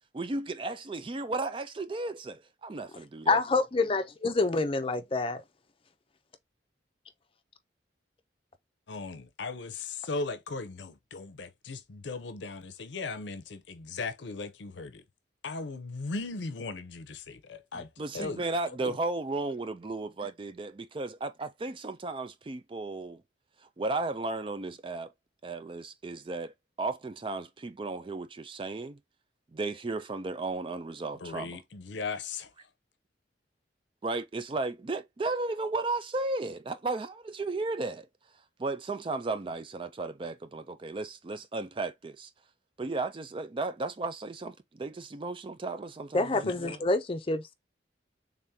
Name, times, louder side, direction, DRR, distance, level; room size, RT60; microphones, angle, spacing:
voice 1, 0.1-3.4 17.7-23.2 23.8-25.1 25.4-26.5 26.8-29.0 29.5-31.6 34.0-38.1 38.6-42.3 42.8-46.8, right 3 dB, 30° right, 0.4 m, -34 dB
voice 2, 3.3-5.4 46.1-47.5, left 3 dB, 30° left, 0.5 m, -27 dB
voice 3, 8.9-15.0 15.4-17.9 18.1-19.0 31.2-32.5 46.4-46.5, left 3 dB, 80° left, 0.6 m, -38 dB
3.6 x 3.6 x 2.7 m
head